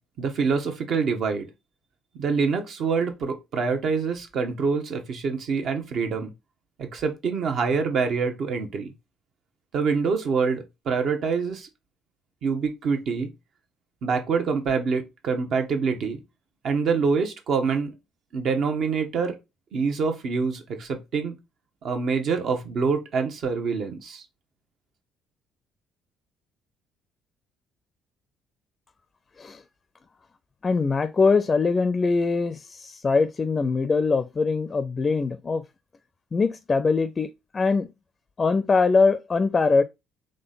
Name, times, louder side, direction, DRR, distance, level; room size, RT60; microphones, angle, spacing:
voice 1, 0.2-1.5 2.1-6.3 6.8-8.9 9.7-11.7 12.4-13.3 14.0-16.2 16.6-17.9 18.3-19.3 19.7-21.4 21.8-24.2, right 5 dB, 60° right, 1.0 m, -25 dB
voice 2, 30.6-35.6 36.3-37.3 37.5-37.9 38.4-39.8, left 4 dB, 35° left, 0.4 m, -22 dB
3.8 x 3.3 x 3.9 m
hypercardioid pair, 55°, 0 cm